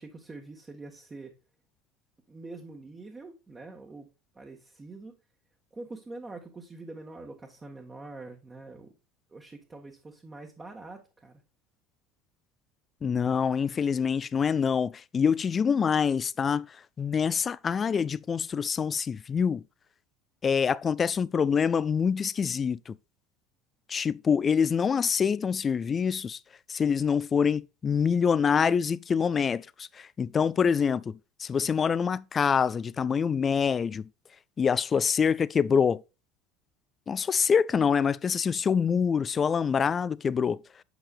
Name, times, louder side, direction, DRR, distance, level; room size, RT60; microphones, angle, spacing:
voice 1, 0.0-1.3 2.3-4.1 4.3-5.2 5.7-8.9 9.3-11.4, right 3 dB, 20° right, 1.3 m, -44 dB
voice 2, 13.0-16.7 17.0-19.6 20.4-23.0 23.9-26.4 26.7-34.1 34.6-36.0 37.1-40.6, left 6 dB, 30° left, 0.3 m, -25 dB
8.1 x 7.0 x 2.4 m
figure-of-eight pair, 70°, 0 cm